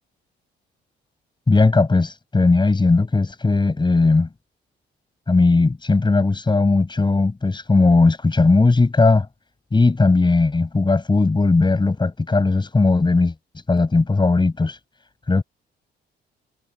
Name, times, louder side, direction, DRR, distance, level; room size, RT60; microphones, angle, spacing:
voice 1, 1.5-4.3 5.3-9.3 9.7-13.3 13.7-14.8 15.3-15.4, left 3 dB, 25° left, 6.5 m, -17 dB
cardioid pair, 90°, 20 cm